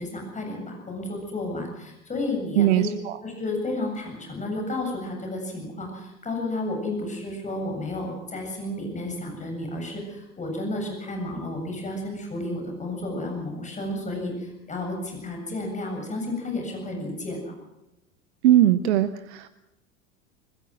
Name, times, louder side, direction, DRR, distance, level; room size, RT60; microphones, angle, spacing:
voice 1, 0.0-2.9 3.2-17.4, left 2 dB, 20° left, 2 dB, 7.7 m, -32 dB
voice 2, 2.6-3.2 18.4-19.5, right 12 dB, 60° right, 13 dB, 1.1 m, -20 dB
24.5 x 20.5 x 6.2 m, 0.90 s
figure-of-eight pair, 75°, 38 cm